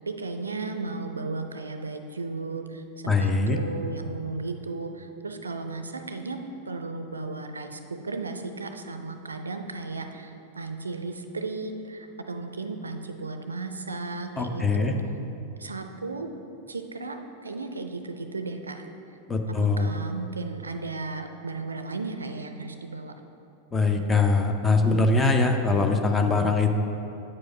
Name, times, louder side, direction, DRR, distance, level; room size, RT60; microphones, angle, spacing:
voice 1, 0.1-6.4 6.7-15.0 15.6-16.3 16.7-18.8 19.5-23.1, right 3 dB, 75° right, 7 dB, 0.4 m, -35 dB
voice 2, 3.1-3.6 14.4-14.9 19.3-19.9 23.7-26.8, left 3 dB, 15° left, 5 dB, 0.6 m, -22 dB
8.4 x 4.9 x 5.0 m, 2.9 s
figure-of-eight pair, 90°, 0 cm